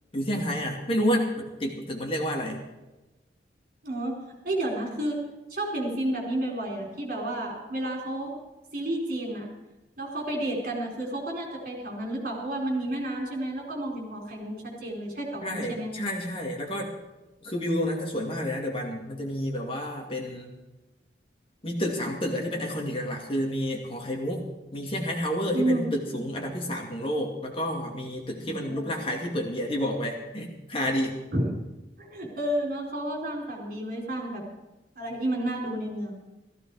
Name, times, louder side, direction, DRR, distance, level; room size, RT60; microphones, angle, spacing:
voice 1, 0.1-2.6 15.4-16.9 17.4-20.5 21.6-24.4 24.7-31.2, equal, 30° left, 0 dB, 2.5 m, -30 dB
voice 2, 3.8-5.2 5.5-8.4 8.7-9.5 10.0-15.9 25.5-26.0 28.4-28.9 31.3-31.5 32.0-34.4 35.0-36.2, right 1 dB, 55° right, -1 dB, 4.5 m, -31 dB
15.5 x 15.0 x 4.9 m, 1.0 s
head